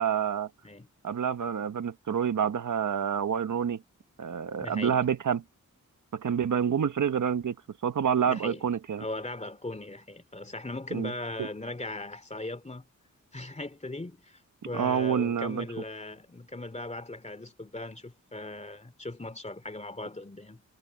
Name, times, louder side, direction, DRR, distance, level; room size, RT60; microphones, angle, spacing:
voice 1, 0.0-0.5 1.0-3.8 4.2-5.4 6.1-7.5 7.8-9.0 10.9-11.1 11.4-11.5 14.7-15.7, right 7 dB, 70° right, 1.2 m, -28 dB
voice 2, 4.6-5.1 6.7-6.8 8.2-8.7 9.0-12.8 13.3-14.4 14.7-20.6, left 2 dB, 20° left, 2.5 m, -39 dB
wide cardioid pair, 95°, 32 cm